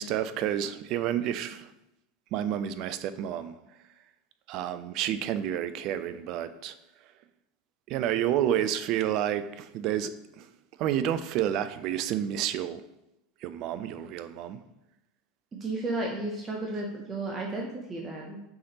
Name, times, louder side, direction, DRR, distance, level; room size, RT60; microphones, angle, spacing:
voice 1, 0.0-1.7 2.3-3.6 4.5-6.8 7.9-10.5 10.8-12.8 13.4-14.6, right 10 dB, 50° right, 13 dB, 0.3 m, -30 dB
voice 2, 15.5-18.4, right 2 dB, 30° right, 0 dB, 0.7 m, -33 dB
5.3 x 3.3 x 2.9 m, 0.88 s
hypercardioid pair, 80°, 0 cm